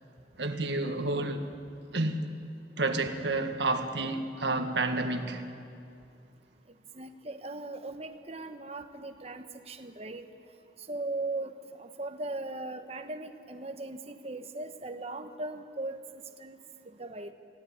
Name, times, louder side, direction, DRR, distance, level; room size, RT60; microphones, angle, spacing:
voice 1, 0.4-1.5 1.9-2.2 2.8-5.4, right 2 dB, 70° right, 1.6 m, -30 dB
voice 2, 6.9-10.3 10.9-11.5 11.8-16.0 16.4-16.6 17.0-17.3, right 2 dB, 35° right, 1.1 m, -38 dB
24.5 x 17.0 x 8.8 m
head